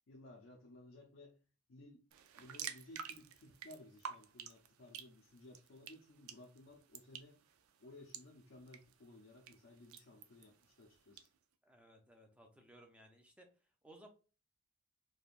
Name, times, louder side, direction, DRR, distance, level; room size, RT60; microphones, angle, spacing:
voice 1, 0.1-1.4 1.7-2.0 2.4-7.4 7.8-11.3, left 1 dB, 65° left, 0.5 m, -58 dB
sound 1, 2.1-11.3, right 8 dB, 85° right, 0.4 m, -52 dB
voice 2, 11.6-14.1, right 1 dB, 5° right, 0.4 m, -61 dB
3.3 x 2.2 x 2.4 m
head